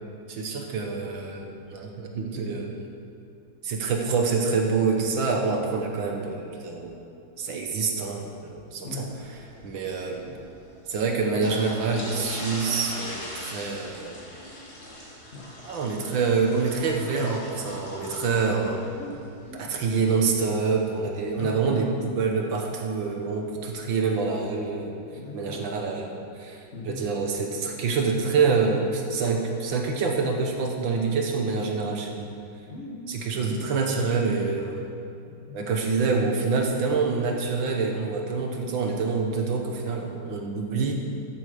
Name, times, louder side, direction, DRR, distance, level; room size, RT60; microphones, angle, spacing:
voice 1, 0.3-2.8 3.6-7.0 7.4-8.9 9.6-10.3 10.9-14.2 15.7-18.9 19.6-25.0 25.3-32.3 33.1-34.9 35.5-40.9, right 4 dB, 70° right, 2 dB, 1.9 m, -26 dB
sound 1, 9.1-21.5, equal, 70° left, 3.5 m, -41 dB
voice 2, 10.0-10.4 15.3-15.5 19.0-19.7 21.3-21.8 25.1-25.7 26.7-27.0 32.7-33.7 35.3-35.6, left 2 dB, 40° left, -2 dB, 1.3 m, -39 dB
13.0 x 7.9 x 5.0 m, 2.6 s
omnidirectional pair, 2.2 m